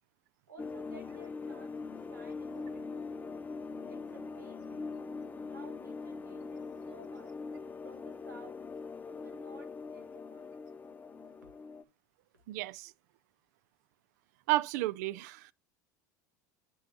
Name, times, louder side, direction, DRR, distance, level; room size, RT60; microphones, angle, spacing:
voice 1, 0.5-3.1 3.9-4.9 5.5-7.3 7.8-8.6 9.1-10.5 11.1-11.2, right 2 dB, 85° right, 1.8 m, -55 dB
sound 1, 0.6-11.8, left 4 dB, 20° left, 0.6 m, -42 dB
voice 2, 12.5-12.9 14.5-15.5, right 17 dB, 65° right, 0.4 m, -32 dB
9.4 x 5.5 x 3.0 m
hypercardioid pair, 80°, 10 cm